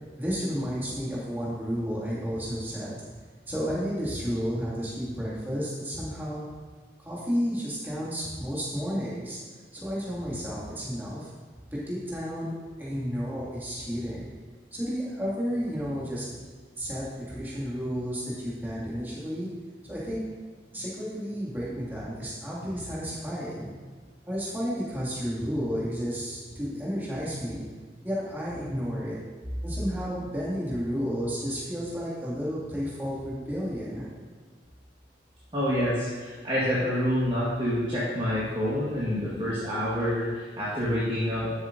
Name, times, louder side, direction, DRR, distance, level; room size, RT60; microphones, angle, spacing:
voice 1, 0.2-3.0 3.5-6.5 7.0-9.4 9.7-11.3 11.7-14.3 14.7-16.4 16.8-19.5 19.9-20.2 20.7-23.7 24.3-27.7 28.0-29.2 29.6-34.0, equal, 10° right, -8 dB, 2.3 m, -32 dB
voice 2, 35.5-41.5, equal, 25° right, -9 dB, 1.5 m, -27 dB
12.0 x 7.3 x 2.7 m, 1.5 s
head